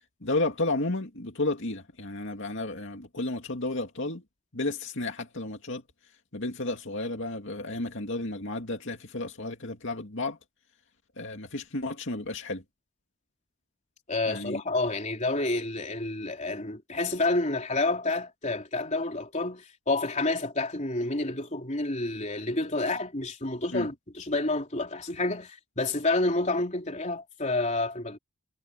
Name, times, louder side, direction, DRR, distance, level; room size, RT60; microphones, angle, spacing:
voice 1, 0.2-4.2 4.5-5.8 6.3-10.4 11.2-12.6 14.3-14.6 23.7-23.9, left 2 dB, 60° left, 2.6 m, -32 dB
voice 2, 14.1-28.2, left 2 dB, 35° left, 3.6 m, -29 dB
head